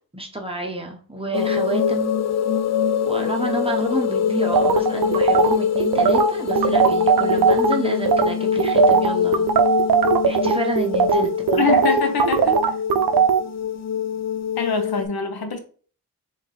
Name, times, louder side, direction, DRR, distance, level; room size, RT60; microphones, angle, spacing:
voice 1, 0.1-2.2 3.0-9.5 10.2-11.8, right 1 dB, 15° right, 0.8 m, -29 dB
sound 1, 1.3-15.1, left 8 dB, 45° left, 0.5 m, -24 dB
sound 2, 4.5-7.7 8.1-8.3 8.6-13.4, right 6 dB, 75° right, 0.5 m, -18 dB
voice 2, 11.5-12.6 14.6-15.6, left 5 dB, 75° left, 0.8 m, -24 dB
3.7 x 2.7 x 3.7 m
wide cardioid pair, 75°, 37 cm